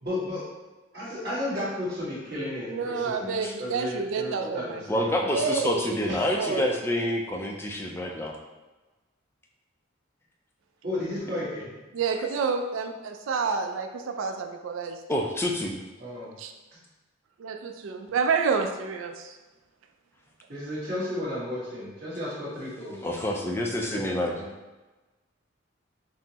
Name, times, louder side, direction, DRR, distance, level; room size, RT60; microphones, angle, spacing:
voice 1, 0.0-0.5 0.9-5.2 6.1-6.6 10.8-11.7 16.0-16.3 20.5-23.2 23.9-24.5, left 1 dB, 50° right, -8 dB, 1.4 m, -33 dB
voice 2, 2.7-4.8 5.3-6.7 11.9-15.0 16.4-16.5 17.4-19.4, right 5 dB, 75° right, 5 dB, 0.3 m, -29 dB
voice 3, 4.9-8.3 15.1-15.8 23.0-24.3, left 1 dB, 10° left, 0 dB, 0.3 m, -28 dB
5.4 x 2.0 x 2.8 m, 1.2 s
head